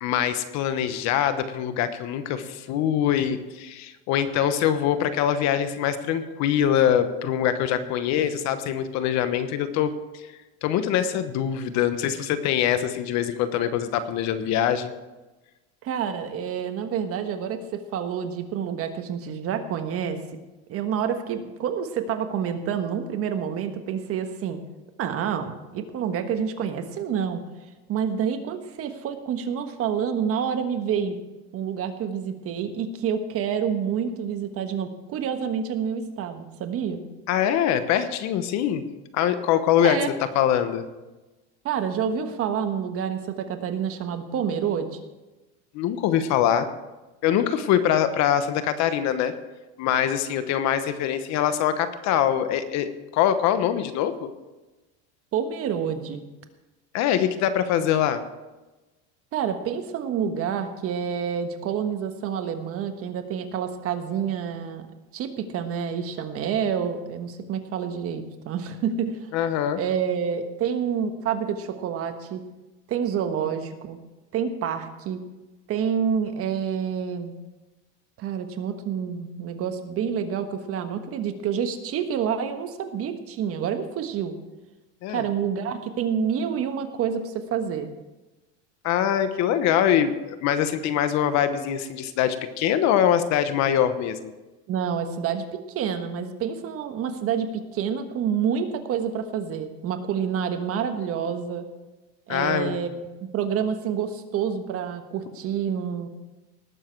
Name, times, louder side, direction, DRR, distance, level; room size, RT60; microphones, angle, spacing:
voice 1, 0.0-9.9 10.6-14.9 37.3-38.8 39.1-40.0 40.3-40.8 45.7-46.7 47.2-49.3 49.8-54.3 56.9-58.2 69.3-69.8 85.0-85.2 88.8-94.3 102.3-102.7, left 10 dB, 50° left, 11 dB, 1.1 m, -23 dB
voice 2, 15.8-20.2 20.7-24.6 25.0-27.4 27.9-31.2 31.5-37.0 39.8-40.1 41.6-45.0 55.3-56.2 59.3-64.9 65.1-69.2 69.7-72.4 72.9-74.0 74.3-75.2 75.7-77.4 78.2-84.3 85.1-87.9 94.7-101.7 102.3-103.1 103.3-106.1, right 7 dB, 40° right, 7 dB, 1.4 m, -28 dB
19.0 x 7.4 x 4.6 m, 1.1 s
supercardioid pair, 135°, 35 cm